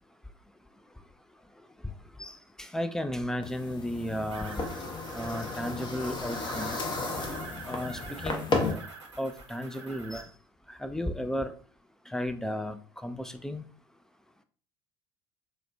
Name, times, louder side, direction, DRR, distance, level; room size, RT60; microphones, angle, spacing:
voice 1, 2.2-4.6 5.1-6.8 7.7-8.5 9.2-10.3 10.7-11.5 12.1-12.8 13.0-13.6, left 1 dB, 5° left, 9 dB, 0.3 m, -34 dB
sound 1, 3.4-8.7, left 3 dB, 30° left, 0.7 m, -33 dB
sound 2, 4.3-10.2, right 4 dB, 85° right, 0.7 m, -46 dB
4.1 x 2.2 x 2.5 m, 0.42 s
figure-of-eight pair, 65°, 14 cm